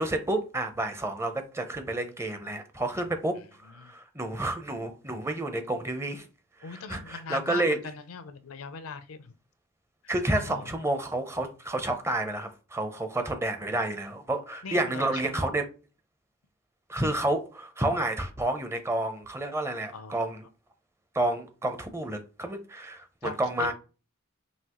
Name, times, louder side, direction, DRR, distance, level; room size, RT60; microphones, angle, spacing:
voice 1, 0.0-6.3 6.7-7.8 10.1-15.6 16.9-20.5 21.1-23.7, right 1 dB, 10° right, 0.6 m, -30 dB
voice 2, 3.3-3.9 6.6-9.4 10.4-10.8 14.6-15.5 19.9-20.2 23.2-23.7, left 5 dB, 75° left, 0.5 m, -41 dB
5.6 x 2.7 x 2.9 m
head